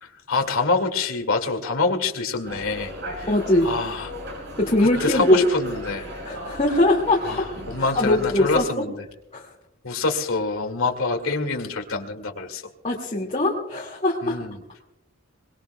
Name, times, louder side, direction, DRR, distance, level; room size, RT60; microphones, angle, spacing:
voice 1, 0.0-3.3 3.6-4.1 4.8-6.1 7.2-9.0 9.8-12.6 14.2-14.6, left 3 dB, 80° left, 4 dB, 2.1 m, -26 dB
sound 1, 2.5-8.6, equal, 55° right, 7.0 m, -37 dB
voice 2, 3.3-3.7 4.6-5.4 6.3-7.2 7.9-8.8 9.3-9.5 12.8-14.4, left 1 dB, 30° left, -2 dB, 2.1 m, -21 dB
25.0 x 20.5 x 2.2 m, 0.87 s
head